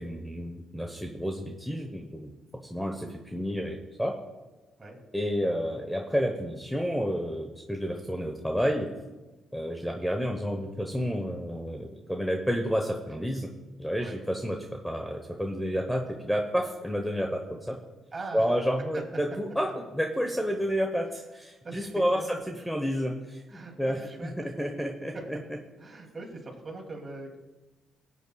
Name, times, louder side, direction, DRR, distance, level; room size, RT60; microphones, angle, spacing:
voice 1, 0.0-2.3 2.7-4.1 5.1-8.9 9.5-13.5 13.8-14.6 14.8-17.4 17.7-17.8 18.3-24.3 24.6-25.1, equal, ahead, 2 dB, 1.0 m, -30 dB
voice 2, 18.1-18.4 18.9-19.0 21.6-22.4 23.5-24.5 25.1-25.2 25.8-27.4, right 3 dB, 35° right, 1 dB, 2.6 m, -41 dB
17.5 x 8.3 x 2.3 m, 1.1 s
cardioid pair, 90°, 0 cm